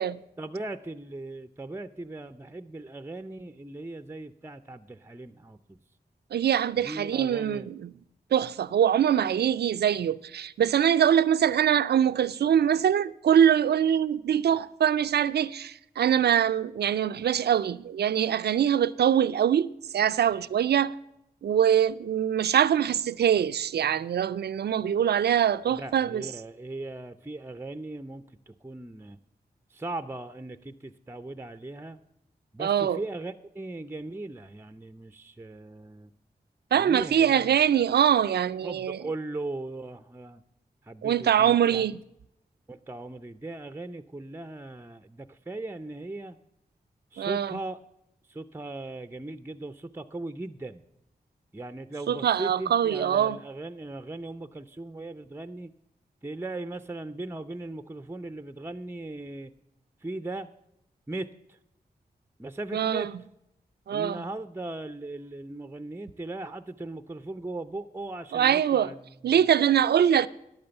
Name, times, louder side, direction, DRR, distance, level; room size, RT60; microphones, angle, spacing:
voice 1, 0.4-5.8 6.8-7.7 25.7-29.2 29.7-32.0 32.5-36.1 36.7-37.6 38.6-40.4 40.8-42.0 42.7-46.4 47.1-47.8 48.2-50.8 51.5-55.7 56.2-59.5 60.0-60.5 61.1-61.6 62.4-63.1 63.9-69.5, right 2 dB, 15° right, 0.5 m, -38 dB
voice 2, 6.3-7.9 8.3-19.7 19.9-20.9 21.4-26.2 32.6-33.0 36.7-39.0 41.0-42.0 47.2-47.5 52.1-53.4 62.7-63.1 63.9-64.2 68.3-68.9 69.2-70.3, right 9 dB, 80° right, 0.4 m, -23 dB
10.5 x 8.7 x 6.9 m
cardioid pair, 45°, 17 cm